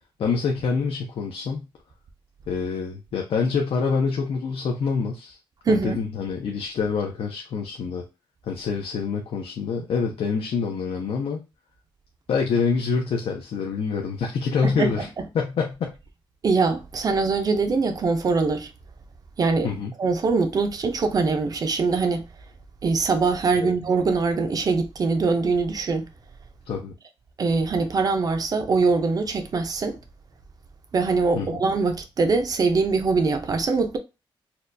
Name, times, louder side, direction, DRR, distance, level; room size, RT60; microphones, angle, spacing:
voice 1, 0.2-1.7 2.5-5.4 5.7-8.0 8.5-11.4 12.3-15.1 15.3-15.9 19.6-19.9 23.6-23.7 26.7-26.9 31.3-31.6, left 5 dB, 80° left, 0.6 m, -26 dB
voice 2, 5.7-6.0 14.6-15.3 16.4-18.7 19.4-19.7 20.0-22.3 22.8-26.1 27.4-30.0 30.9-34.0, right 4 dB, 40° right, 0.4 m, -23 dB
4.3 x 2.2 x 2.5 m
wide cardioid pair, 175°, 10 cm